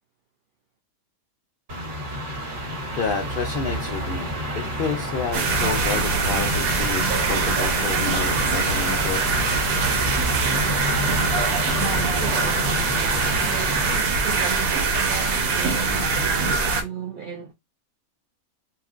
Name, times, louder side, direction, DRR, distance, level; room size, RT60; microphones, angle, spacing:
sound 1, 1.7-14.0, equal, 45° right, 1.0 m, -29 dB
voice 1, 2.9-9.2, left 5 dB, 70° left, 0.5 m, -30 dB
sound 2, 5.3-16.8, right 4 dB, 85° right, 1.1 m, -23 dB
voice 2, 11.8-17.5, right 6 dB, 70° right, 0.5 m, -35 dB
3.0 x 2.5 x 2.4 m
omnidirectional pair, 1.4 m